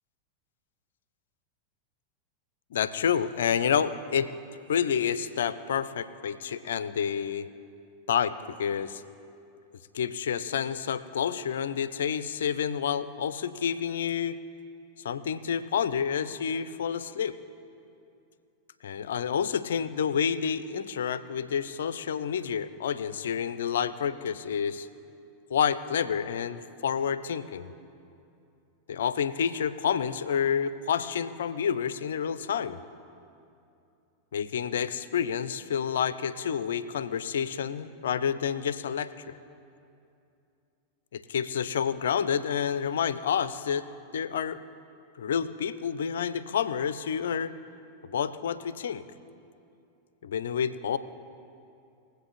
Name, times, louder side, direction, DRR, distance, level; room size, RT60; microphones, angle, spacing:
voice 1, 2.7-4.3 4.7-7.5 8.1-9.0 9.9-14.4 15.0-17.4 18.8-24.9 25.5-27.7 28.9-32.8 34.3-39.4 41.1-43.9 44.1-44.6 45.2-47.5 48.0-49.0 50.2-51.0, left 7 dB, 60° left, 15 dB, 0.5 m, -29 dB
21.0 x 8.1 x 4.2 m, 2.6 s
figure-of-eight pair, 90°, 0 cm